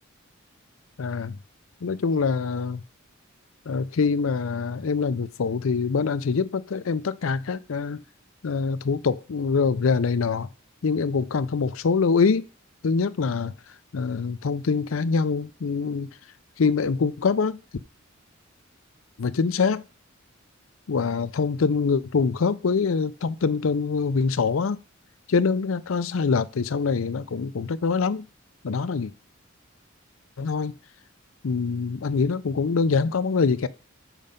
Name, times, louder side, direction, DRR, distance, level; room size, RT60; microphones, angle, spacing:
voice 1, 1.0-1.4 1.8-2.8 3.7-8.0 8.4-10.5 10.8-12.4 12.8-13.5 13.9-16.1 16.6-17.6 19.2-19.8 20.9-24.8 25.3-28.2 28.6-29.1 30.4-30.7 31.4-33.7, left 5 dB, 70° left, 0.5 m, -24 dB
7.4 x 5.3 x 5.2 m
head